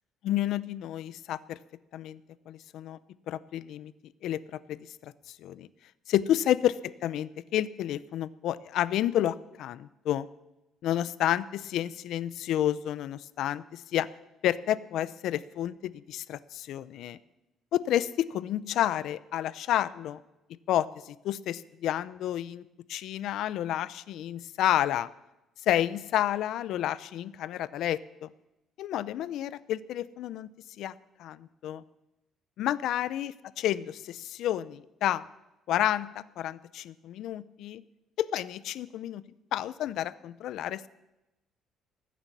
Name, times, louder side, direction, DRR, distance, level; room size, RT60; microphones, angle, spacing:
voice 1, 0.2-1.6 1.9-2.2 2.5-3.0 3.3-3.9 4.2-4.4 4.7-5.7 6.1-10.3 10.8-14.1 14.4-17.2 17.7-20.2 20.7-22.6 22.9-25.1 25.7-28.3 28.8-30.5 30.8-30.9 31.2-31.8 32.6-35.2 35.7-37.8 38.2-39.2 39.5-40.8, left 12 dB, 65° left, 18 dB, 0.5 m, -30 dB
14.5 x 9.4 x 7.3 m, 0.97 s
cardioid pair, 155°, 0 cm